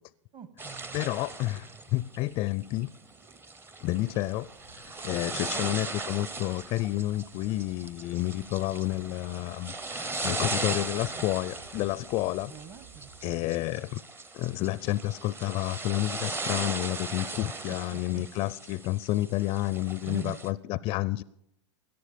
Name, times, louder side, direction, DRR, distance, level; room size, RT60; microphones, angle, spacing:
voice 1, 0.3-1.0 5.2-5.7 12.5-13.3 17.7-18.2 20.1-20.4, right 7 dB, 35° right, 12 dB, 1.3 m, -44 dB
sound 1, 0.6-20.5, right 3 dB, 15° right, 0.7 m, -38 dB
voice 2, 0.9-2.9 3.8-4.5 5.0-12.5 13.2-14.0 14.3-21.2, left 17 dB, 35° left, 20 dB, 0.4 m, -30 dB
sound 2, 3.8-13.5, right 5 dB, 65° right, 4.4 m, -56 dB
17.0 x 11.0 x 5.1 m, 0.76 s
hypercardioid pair, 110°, 15 cm